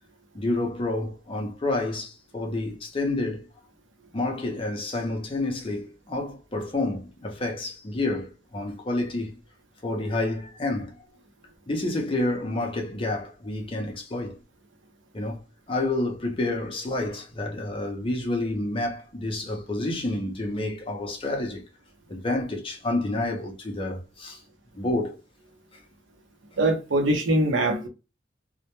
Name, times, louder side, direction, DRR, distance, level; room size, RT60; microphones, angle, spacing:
voice 1, 0.3-3.4 4.1-9.3 9.8-10.9 11.7-14.4 15.1-15.4 15.7-21.6 22.1-24.4 24.7-25.1, left 2 dB, 30° left, 0.5 m, -29 dB
voice 2, 26.6-27.9, right 1 dB, 80° right, 0.6 m, -22 dB
2.1 x 2.1 x 2.9 m
head